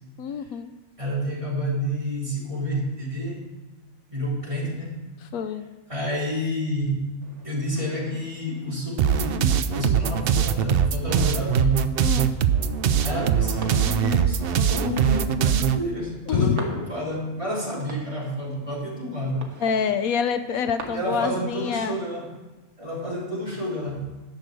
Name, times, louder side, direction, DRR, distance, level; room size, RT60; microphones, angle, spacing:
voice 1, 0.2-0.7 5.3-5.7 12.0-12.3 16.3-16.7 19.6-22.0, left 7 dB, 80° left, 11 dB, 1.1 m, -26 dB
voice 2, 1.0-3.5 4.1-5.0 5.9-7.1 7.4-11.9 13.0-19.5 20.8-22.3 22.8-24.0, equal, 20° right, -5 dB, 3.3 m, -29 dB
sound 1, 7.2-20.8, right 4 dB, 85° right, 1.8 m, -46 dB
sound 2, 9.0-15.8, right 8 dB, 65° right, 0.6 m, -22 dB
10.5 x 6.6 x 7.6 m, 1.1 s
omnidirectional pair, 1.5 m